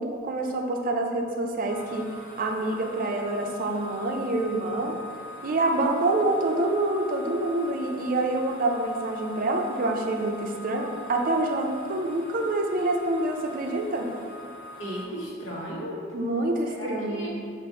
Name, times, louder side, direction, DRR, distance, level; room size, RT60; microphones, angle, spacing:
voice 1, 0.0-2.1 2.4-5.0 5.4-14.1 16.1-17.3, right 2 dB, 45° right, 2 dB, 0.4 m, -27 dB
sound 1, 1.7-15.0, left 1 dB, 45° left, 0.5 m, -43 dB
voice 2, 14.8-16.0 16.7-17.3, equal, 85° left, -5 dB, 1.1 m, -35 dB
5.2 x 2.5 x 3.5 m, 2.3 s
head